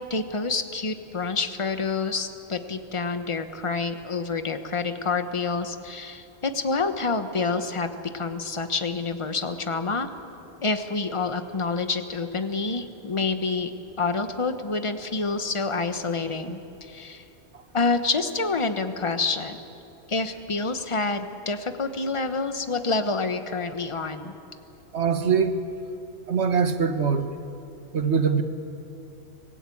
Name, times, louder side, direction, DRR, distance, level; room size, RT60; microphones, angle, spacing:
voice 1, 0.1-10.1 10.6-13.7 14.0-17.2 17.7-19.6 20.1-24.3, left 4 dB, 30° left, 8 dB, 1.1 m, -28 dB
voice 2, 24.9-25.6 26.3-27.3 27.9-28.4, right 6 dB, 75° right, 8 dB, 1.5 m, -22 dB
25.5 x 17.5 x 8.6 m, 2.8 s
omnidirectional pair, 1.1 m